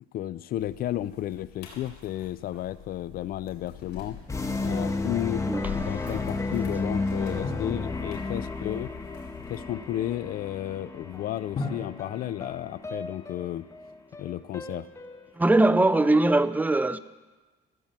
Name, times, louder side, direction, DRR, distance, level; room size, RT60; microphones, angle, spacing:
voice 1, 0.1-4.2 4.6-5.4 5.7-8.9 9.5-13.7 14.2-14.9, left 13 dB, 60° left, 0.4 m, -33 dB
sound 1, 0.6-9.6, left 7 dB, 80° left, 3.6 m, -45 dB
sound 2, 4.3-16.0, left 3 dB, 20° left, 1.3 m, -33 dB
Drum, 7.4-8.9 11.6-13.7, left 3 dB, 45° left, 2.5 m, -39 dB
voice 2, 15.4-17.0, right 2 dB, 10° right, 0.5 m, -21 dB
14.5 x 8.6 x 7.4 m
cardioid pair, 110°, 17 cm